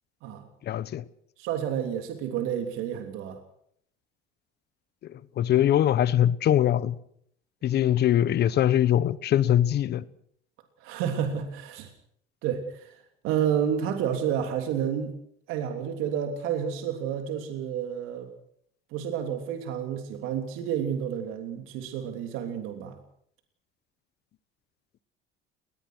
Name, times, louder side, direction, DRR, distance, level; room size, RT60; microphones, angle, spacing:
voice 1, 0.6-1.0 5.1-6.9 7.6-10.0, left 11 dB, 50° left, 1.1 m, -22 dB
voice 2, 1.4-3.4 10.8-11.9 12.4-13.0 13.2-15.1 15.5-18.3 18.9-23.0, right 8 dB, 80° right, 3.1 m, -30 dB
21.0 x 20.0 x 6.4 m
cardioid pair, 105°, 21 cm